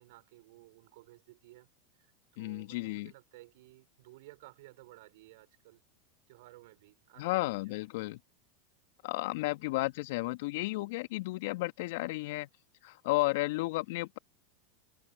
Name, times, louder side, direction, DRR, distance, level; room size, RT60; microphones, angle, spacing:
voice 1, 0.0-1.7 2.0-5.8 6.3-7.8, right 20 dB, 65° right, 5.4 m, -56 dB
voice 2, 2.4-3.1 7.2-8.2 9.0-12.5 12.8-14.2, left 21 dB, 65° left, 2.2 m, -33 dB
hypercardioid pair, 85°, 0 cm